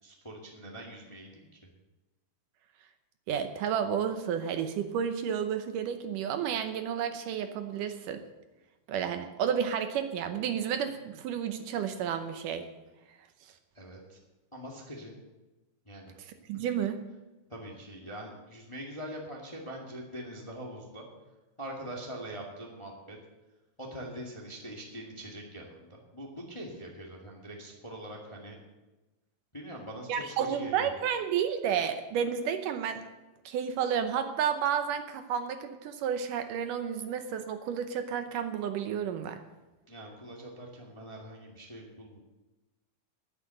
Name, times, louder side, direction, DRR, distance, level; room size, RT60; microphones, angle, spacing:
voice 1, 0.0-1.5 13.7-14.2 14.5-15.2 15.8-16.1 16.5-16.6 17.5-21.0 21.6-23.2 23.8-28.6 29.5-30.9 39.9-42.2, right 1 dB, 15° left, -1 dB, 1.3 m, -43 dB
voice 2, 3.3-8.2 8.9-12.7 16.5-17.0 30.1-33.0 33.5-39.4, right 8 dB, 75° right, 8 dB, 2.3 m, -31 dB
11.5 x 9.8 x 7.8 m, 1.1 s
omnidirectional pair, 4.0 m